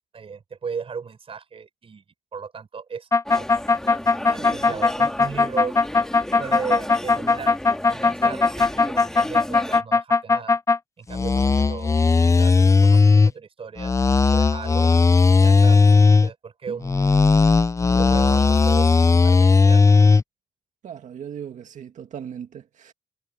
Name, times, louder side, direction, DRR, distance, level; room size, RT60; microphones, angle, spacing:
voice 1, 0.1-2.0 2.3-3.5 4.3-5.8 6.4-7.6 7.9-10.6 11.0-13.0 13.2-14.0 14.3-14.9 15.4-17.3 17.8-20.1, right 6 dB, 50° right, 4.6 m, -36 dB
sound 1, 3.1-10.8 11.1-13.3 13.8-16.3 16.8-20.2, left 4 dB, 25° left, 0.5 m, -17 dB
sound 2, 3.3-9.8, equal, 5° left, 2.1 m, -34 dB
voice 2, 4.4-4.8 16.7-16.8 20.8-22.9, right 8 dB, 85° right, 2.1 m, -38 dB
cardioid pair, 105°, 12 cm